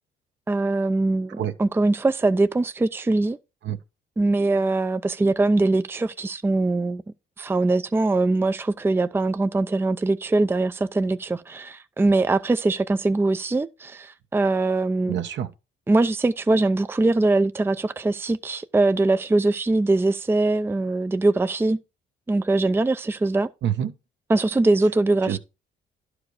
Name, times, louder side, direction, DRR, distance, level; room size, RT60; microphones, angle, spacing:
voice 1, 0.5-3.4 4.2-7.0 7.4-15.2 15.9-21.8 22.3-23.5 24.3-25.4, right 2 dB, 10° right, 0.5 m, -22 dB
voice 2, 15.1-15.5 23.6-23.9 25.2-25.4, right 10 dB, 65° right, 1.0 m, -26 dB
11.5 x 4.8 x 4.9 m
cardioid pair, 90°, 20 cm